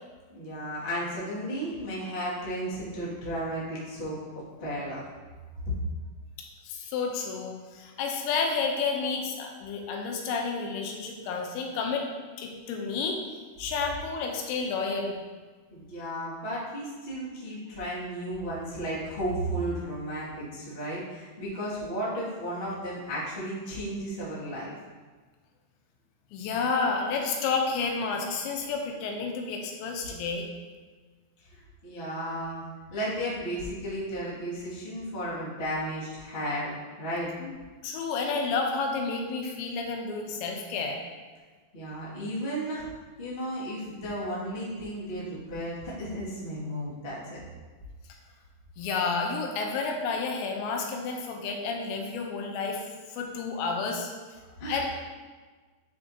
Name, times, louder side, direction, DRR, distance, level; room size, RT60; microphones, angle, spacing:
voice 1, 0.3-4.2 4.6-5.0 15.7-24.7 31.5-37.3 41.7-42.9 43.2-47.4 54.6-54.8, equal, 60° left, -8 dB, 0.6 m, -34 dB
voice 2, 6.6-12.1 12.4-13.2 13.6-15.2 26.3-30.5 37.4-37.6 37.8-41.0 48.8-54.1 54.7-54.9, left 4 dB, 80° left, 2 dB, 3.0 m, -30 dB
9.5 x 5.6 x 2.8 m, 1.4 s
omnidirectional pair, 5.2 m